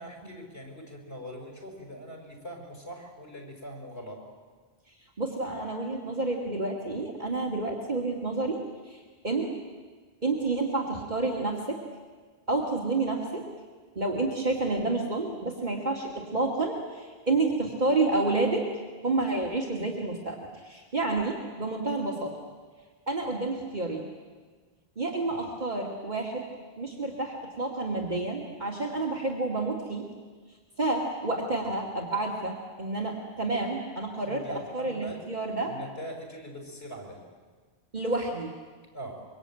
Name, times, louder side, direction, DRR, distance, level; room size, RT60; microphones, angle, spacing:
voice 1, 0.0-4.2 25.2-25.4 34.3-35.2 35.6-37.2 38.9-39.3, equal, 90° left, 2 dB, 6.1 m, -42 dB
voice 2, 5.2-8.6 8.9-9.5 10.2-11.8 12.5-13.4 14.0-18.7 19.0-22.4 23.1-24.1 25.0-26.4 26.8-30.0 30.8-35.8 37.9-38.5, right 2 dB, 45° right, -1 dB, 2.5 m, -29 dB
24.5 x 24.0 x 9.0 m, 1.5 s
omnidirectional pair, 1.0 m